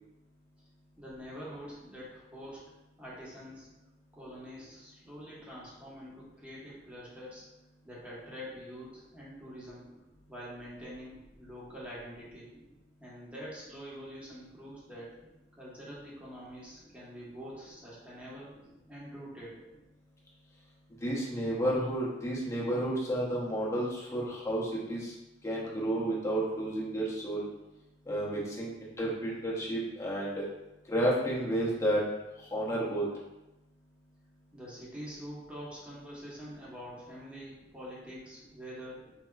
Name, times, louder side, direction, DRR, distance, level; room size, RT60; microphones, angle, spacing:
voice 1, 1.0-2.6 3.0-3.7 4.1-7.5 7.8-9.8 10.3-12.5 13.0-15.2 15.6-18.5 18.9-19.6 34.5-39.1, equal, 5° right, -7 dB, 1.0 m, -45 dB
voice 2, 21.0-25.1 25.4-27.4 28.1-30.4 30.9-32.0 32.5-33.0, right 1 dB, 15° left, -6 dB, 0.8 m, -31 dB
4.4 x 2.8 x 2.3 m, 0.98 s
head